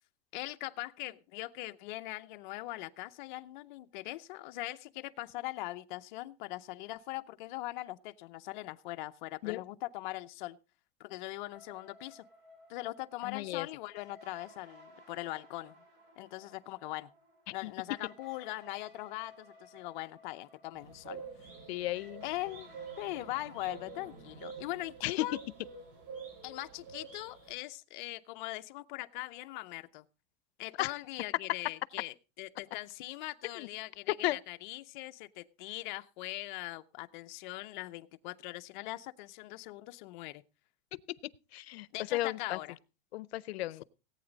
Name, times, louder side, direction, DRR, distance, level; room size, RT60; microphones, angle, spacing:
voice 1, 0.3-10.6 11.0-12.3 12.7-15.8 16.2-17.1 17.5-21.2 22.2-22.7 23.0-25.4 26.4-30.1 30.6-40.4 41.9-42.8, left 18 dB, 50° left, 0.7 m, -41 dB
sound 1, 11.5-27.1, equal, 35° right, 3.1 m, -59 dB
voice 2, 13.2-13.7 17.6-17.7 21.7-22.2 25.0-25.2 30.8-30.9 33.6-33.7 34.2-34.4 41.5-42.6 43.1-43.8, left 16 dB, 90° left, 0.6 m, -34 dB
sound 2, 20.7-27.5, right 5 dB, 60° right, 5.1 m, -48 dB
18.0 x 8.9 x 3.9 m
supercardioid pair, 165°, 30 cm